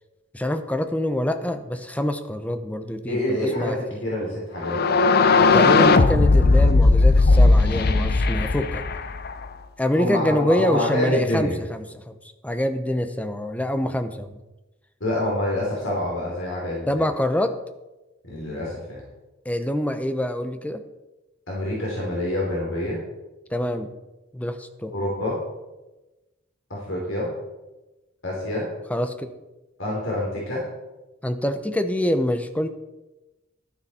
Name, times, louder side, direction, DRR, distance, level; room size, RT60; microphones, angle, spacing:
voice 1, 0.3-4.0 5.4-8.8 9.8-12.2 12.4-14.4 16.9-17.5 19.4-20.8 23.5-23.9 24.3-24.9 28.9-29.3 31.2-32.7, left 1 dB, 10° left, 9 dB, 0.7 m, -25 dB
voice 2, 3.1-4.9 10.0-11.5 15.0-17.0 18.2-19.0 21.5-23.0 24.9-25.4 26.7-27.3 28.2-28.7 29.8-30.7, left 1 dB, 85° left, -4 dB, 3.3 m, -27 dB
sound 1, 4.6-9.5, left 3 dB, 55° left, 0.6 m, -17 dB
12.0 x 9.9 x 4.3 m, 1.1 s
head